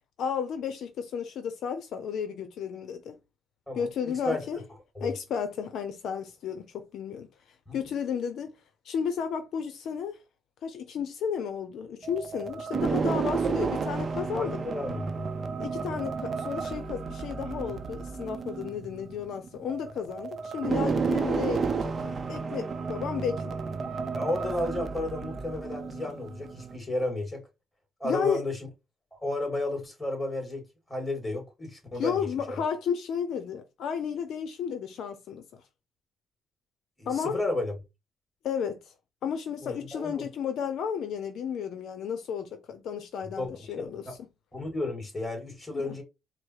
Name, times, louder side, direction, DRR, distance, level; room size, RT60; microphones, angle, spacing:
voice 1, 0.2-3.2 3.8-4.6 5.0-7.3 7.7-8.5 8.8-10.2 10.6-14.6 15.6-23.5 28.0-28.4 32.0-35.4 37.1-37.4 38.4-38.9 39.2-44.0 45.7-46.0, left 7 dB, 75° left, 0.6 m, -33 dB
voice 2, 3.7-4.5 4.9-5.1 7.7-7.8 14.3-15.2 24.1-27.4 28.0-28.6 29.2-32.3 37.0-37.7 39.6-40.2 43.4-43.5 43.8-44.2 44.5-46.0, left 2 dB, 15° left, 2.7 m, -33 dB
sound 1, 12.0-26.8, right 5 dB, 45° right, 0.6 m, -32 dB
4.6 x 2.1 x 4.7 m
cardioid pair, 90°, 0 cm